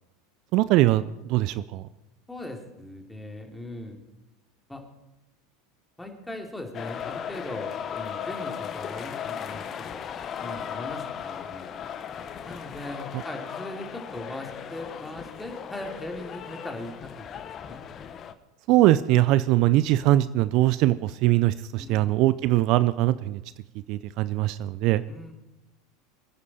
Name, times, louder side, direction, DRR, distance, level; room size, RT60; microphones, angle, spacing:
voice 1, 0.5-1.9 18.7-23.4 23.9-25.0, right 15 dB, 55° right, 16 dB, 0.5 m, -22 dB
voice 2, 2.3-4.0 4.7-4.8 6.0-9.6 9.9-10.1 10.4-11.8 12.5-17.3 17.6-17.8 21.8-22.3 25.1-25.3, left 1 dB, 10° left, 2 dB, 2.7 m, -39 dB
sound 1, 6.7-18.3, left 8 dB, 35° left, 1.0 m, -37 dB
24.0 x 9.6 x 4.2 m, 1.0 s
hypercardioid pair, 85°, 0 cm